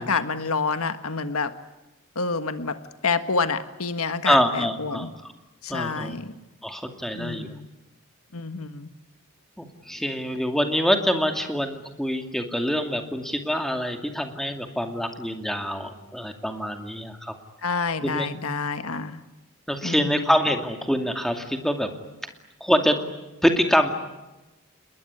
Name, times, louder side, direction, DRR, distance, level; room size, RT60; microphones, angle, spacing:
voice 1, 0.0-1.5 2.1-5.1 5.6-6.3 7.1-7.7 8.3-8.9 17.6-19.2 19.8-20.3, left 4 dB, 75° left, 10 dB, 1.6 m, -28 dB
voice 2, 4.3-5.1 5.7-6.1 6.6-7.5 9.6-17.3 18.0-18.3 19.7-21.9 22.6-23.0 23.4-23.9, equal, ahead, 4 dB, 2.3 m, -25 dB
29.0 x 21.0 x 9.8 m, 1.0 s
head